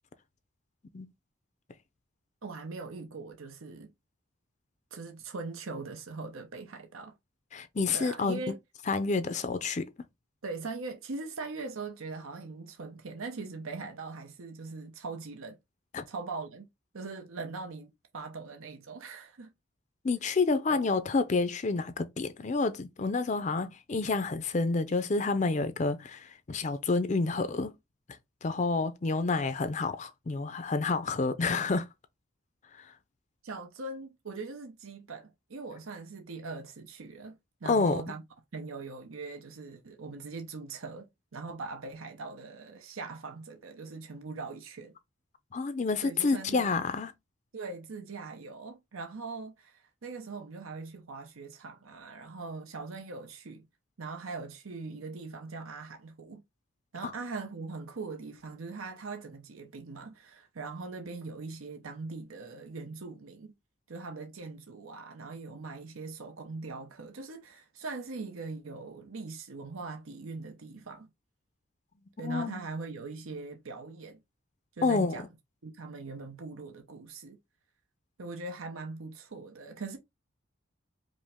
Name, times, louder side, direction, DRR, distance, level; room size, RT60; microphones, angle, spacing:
voice 1, 2.4-3.9 4.9-7.1 7.9-8.6 10.4-15.6 16.1-16.7 16.9-19.5 20.7-20.9 33.4-38.2 38.5-44.9 46.0-46.7 47.5-53.7 54.0-56.4 56.9-63.5 63.9-71.1 72.2-74.2 74.7-75.3 75.6-77.4 78.2-80.0, right 3 dB, 90° right, 0.7 m, -41 dB
voice 2, 7.5-8.5 8.9-9.9 15.9-16.1 20.0-27.7 28.4-31.9 32.7-32.9 37.7-38.0 45.5-47.1 57.0-57.1 72.2-72.6 74.8-75.2, left 3 dB, 35° left, 0.4 m, -29 dB
5.1 x 2.1 x 3.4 m
head